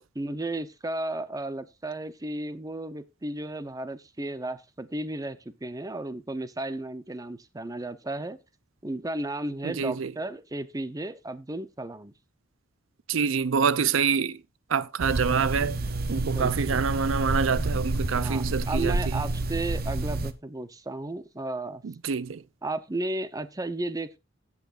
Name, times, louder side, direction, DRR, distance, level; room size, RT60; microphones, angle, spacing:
voice 1, 0.1-8.4 8.8-12.1 16.3-16.8 18.1-21.8 22.6-24.2, right 2 dB, 20° right, 0.7 m, -34 dB
voice 2, 9.6-10.1 13.1-14.4 14.7-15.8 16.1-19.2 21.8-22.4, right 6 dB, 75° right, 0.5 m, -26 dB
sound 1, 15.0-20.3, right 2 dB, 50° right, 0.9 m, -29 dB
17.0 x 8.3 x 2.5 m
head